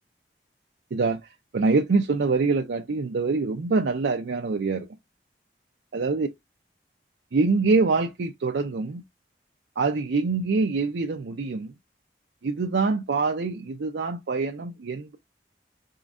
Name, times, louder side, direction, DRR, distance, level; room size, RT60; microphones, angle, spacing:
voice 1, 0.9-5.0 5.9-6.3 7.3-9.0 9.8-11.7 12.4-15.2, right 4 dB, 80° right, 0.5 m, -25 dB
4.9 x 3.8 x 2.4 m
head